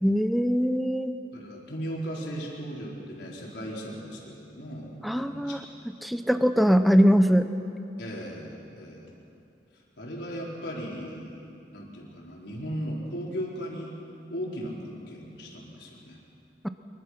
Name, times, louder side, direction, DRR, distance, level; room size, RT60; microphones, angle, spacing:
voice 1, 0.0-1.2 5.0-5.6 6.0-7.5 16.6-16.7, equal, ahead, 9 dB, 0.7 m, -22 dB
voice 2, 1.3-5.6 8.0-9.1 10.0-13.9 14.3-16.2, equal, 80° left, -3 dB, 4.5 m, -37 dB
25.0 x 22.5 x 6.0 m, 2.6 s
head